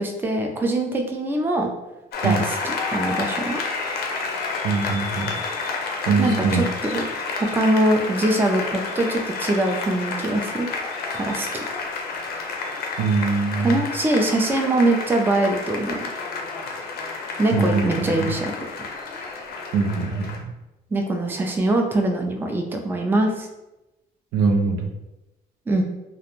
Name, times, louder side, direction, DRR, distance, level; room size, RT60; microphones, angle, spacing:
voice 1, 0.0-1.7 2.2-3.6 6.2-6.6 6.9-7.0 7.4-10.7 11.1-11.6 13.6-16.0 17.4-18.7 20.9-23.5 25.7-25.8, right 1 dB, 10° right, 3 dB, 0.3 m, -23 dB
Applause, 2.1-20.4, left 4 dB, 65° left, 0.5 m, -30 dB
voice 2, 4.6-5.4 6.1-6.6 13.0-13.8 17.5-18.3 19.7-20.5 24.3-24.9, right 4 dB, 80° right, 3 dB, 0.4 m, -22 dB
2.4 x 2.1 x 2.9 m, 0.97 s
cardioid pair, 110°, 17 cm